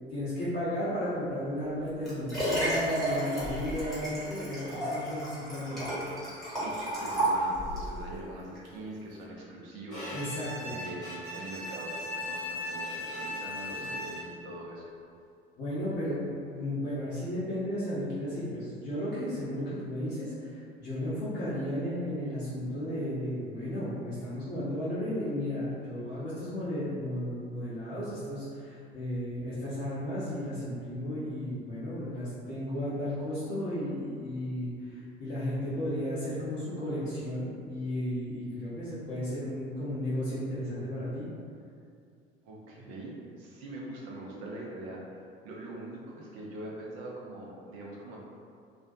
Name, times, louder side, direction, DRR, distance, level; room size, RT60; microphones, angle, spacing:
voice 1, 0.1-5.8 10.1-10.7 15.6-41.3, equal, 30° left, -12 dB, 0.7 m, -34 dB
Liquid, 1.6-7.9 8.6-8.7, right 1 dB, ahead, 1.0 m, -32 dB
voice 2, 6.6-14.9 42.4-48.2, right 1 dB, 50° right, -4 dB, 0.6 m, -43 dB
Bowed string instrument, 9.9-14.5, left 1 dB, 85° left, 0.8 m, -38 dB
2.4 x 2.1 x 2.6 m, 2.4 s
figure-of-eight pair, 65°, 32 cm